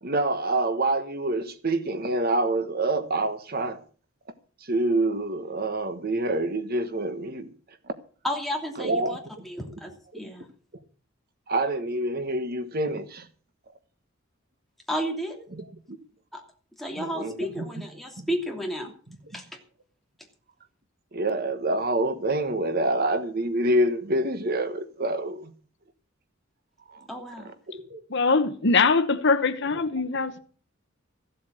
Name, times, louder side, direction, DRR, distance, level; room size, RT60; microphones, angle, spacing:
voice 1, 0.0-3.8 4.6-7.5 7.9-8.0 8.8-9.4 11.5-13.3 15.6-16.0 17.0-17.7 18.2-18.3 21.1-25.5 26.9-27.1 27.7-28.0, right 2 dB, 45° right, 1.2 m, -27 dB
voice 2, 8.2-9.2 9.4-10.5 14.9-15.5 16.3-16.4 16.8-18.9 19.3-19.4 27.1-27.5, equal, ahead, 2.9 m, -32 dB
voice 3, 28.1-30.4, left 4 dB, 55° left, 1.0 m, -22 dB
15.0 x 7.8 x 7.6 m
head